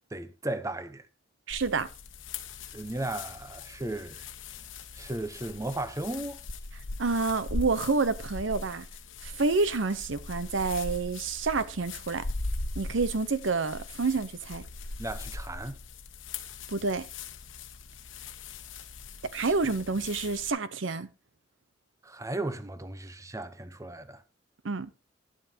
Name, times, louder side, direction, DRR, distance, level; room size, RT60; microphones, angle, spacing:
voice 1, 0.1-1.1 2.7-4.3 4.9-6.4 15.0-15.8 22.0-24.2, right 2 dB, 15° right, 0.8 m, -35 dB
sound 1, 1.5-20.5, left 3 dB, 85° left, 1.1 m, -40 dB
voice 2, 1.5-1.9 7.0-8.9 9.2-12.3 12.8-14.6 16.7-17.1 19.3-21.1 24.6-24.9, right 4 dB, 75° right, 0.8 m, -28 dB
11.0 x 11.0 x 2.8 m
head